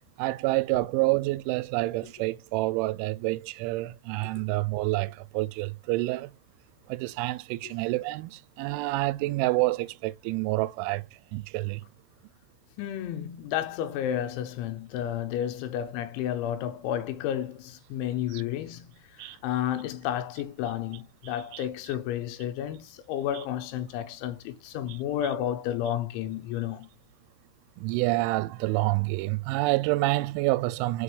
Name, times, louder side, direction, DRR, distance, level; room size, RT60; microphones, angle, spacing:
voice 1, 0.2-6.3 6.9-11.0 11.3-11.8 18.3-18.4 19.2-19.4 21.5-21.7 23.3-23.4 24.9-25.0 27.8-31.0, right 20 dB, 85° right, 2.8 m, -28 dB
voice 2, 12.8-18.9 19.2-26.9, left 10 dB, 80° left, 3.1 m, -31 dB
6.9 x 4.7 x 3.3 m
omnidirectional pair, 5.8 m